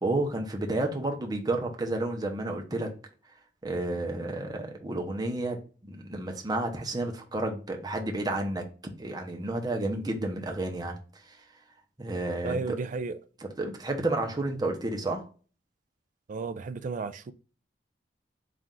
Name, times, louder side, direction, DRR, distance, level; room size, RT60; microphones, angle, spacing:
voice 1, 0.0-2.9 3.6-5.6 5.8-8.6 9.0-11.0 11.3-11.4 12.0-12.8 13.4-15.3, right 2 dB, 20° right, 0.7 m, -31 dB
voice 2, 12.4-13.2 16.3-17.3, right 4 dB, 45° right, 0.3 m, -33 dB
4.2 x 2.4 x 3.6 m
head